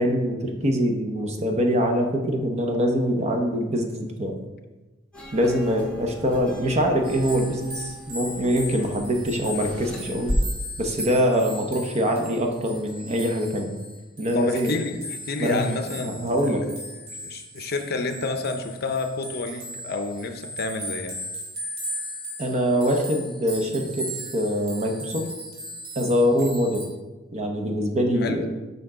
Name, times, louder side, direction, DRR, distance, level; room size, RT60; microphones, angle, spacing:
voice 1, 0.0-4.4 5.3-10.3 10.8-13.8 14.2-14.7 15.4-15.7 16.0-16.6 22.4-25.3 26.0-26.9 27.3-28.5, equal, 35° right, 3 dB, 0.8 m, -24 dB
sound 1, 5.1-10.3, left 1 dB, 5° left, 1.3 m, -37 dB
sound 2, 7.0-26.9, equal, 85° right, 2.2 m, -38 dB
voice 2, 14.3-16.7 17.2-21.1 28.2-28.4, left 3 dB, 50° left, 6 dB, 0.6 m, -30 dB
6.9 x 5.2 x 3.8 m, 1.1 s
head